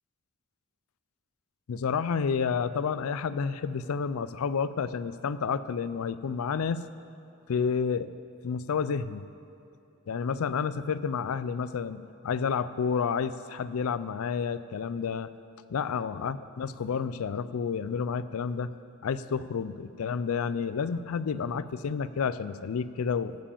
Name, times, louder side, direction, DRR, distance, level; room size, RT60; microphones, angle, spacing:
voice 1, 1.7-6.8 7.5-8.1 8.4-9.2 10.1-15.3 15.7-18.7 19.0-23.4, left 6 dB, 80° left, 15 dB, 0.4 m, -30 dB
14.0 x 5.0 x 8.6 m, 2.7 s
head